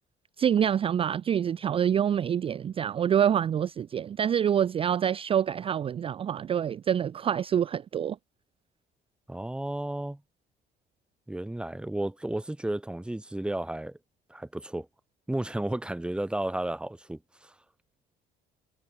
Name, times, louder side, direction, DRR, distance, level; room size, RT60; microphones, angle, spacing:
voice 1, 0.4-8.2, right 9 dB, 35° right, 0.4 m, -26 dB
voice 2, 9.3-10.2 11.3-14.0 14.3-14.9 15.3-17.5, right 1 dB, 5° right, 1.0 m, -33 dB
cardioid pair, 110°, 17 cm